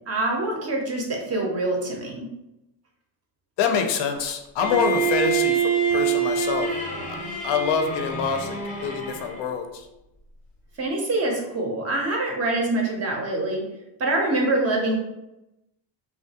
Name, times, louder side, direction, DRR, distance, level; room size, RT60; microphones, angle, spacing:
voice 1, 0.1-2.3 10.8-13.7 14.0-15.0, right 2 dB, 35° right, 0 dB, 0.5 m, -25 dB
voice 2, 3.6-5.6 5.9-6.7 7.4-9.9, left 6 dB, 65° left, 5 dB, 0.5 m, -25 dB
Bowed string instrument, 4.6-9.5, right 6 dB, 15° left, 0.5 m, -26 dB
3.0 x 2.3 x 2.7 m, 0.91 s
cardioid pair, 150°, 47 cm